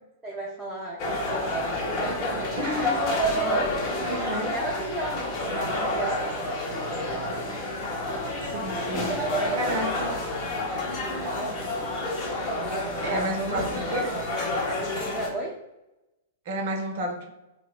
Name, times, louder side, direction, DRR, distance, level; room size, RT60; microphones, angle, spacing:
voice 1, 0.2-2.8 3.3-7.4 8.9-11.6 12.7-13.2 13.5-14.0 14.7-15.6, right 2 dB, 10° right, -6 dB, 0.6 m, -36 dB
sound 1, 1.0-15.3, left 1 dB, 40° left, 0.9 m, -29 dB
voice 2, 2.6-3.1 4.0-4.5 8.4-9.1 9.6-10.1 13.0-14.1 16.5-17.3, right 1 dB, 45° right, 3 dB, 0.7 m, -31 dB
2.7 x 2.2 x 3.8 m, 0.97 s
figure-of-eight pair, 105°, 0 cm